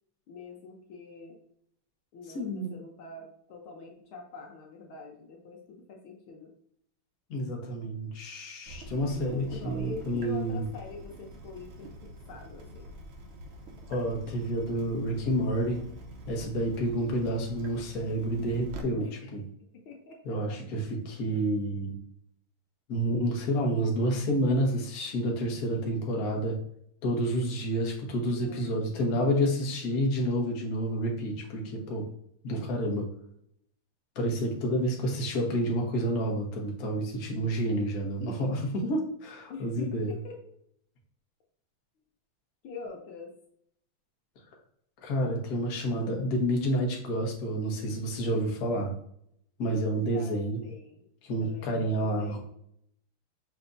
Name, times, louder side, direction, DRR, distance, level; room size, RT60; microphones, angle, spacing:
voice 1, 0.3-1.4 2.1-6.5 9.3-12.9 19.0-19.2 19.7-20.6 28.1-29.5 29.8-29.9 39.5-40.4 42.6-43.3 49.9-51.1 51.4-52.4, left 4 dB, 75° left, 1 dB, 1.5 m, -45 dB
voice 2, 2.3-2.7 7.3-10.6 13.9-15.8 16.3-19.0 19.3-19.4 20.2-22.0 22.9-26.6 27.0-32.1 32.4-33.1 34.1-40.2 45.0-48.9 49.6-50.6 51.2-52.4, right 1 dB, 50° left, 0 dB, 1.3 m, -29 dB
Water tap faucet / Drip, 8.7-18.8, right 1 dB, 75° right, 1.5 m, -45 dB
5.9 x 3.3 x 2.6 m, 0.68 s
omnidirectional pair, 2.4 m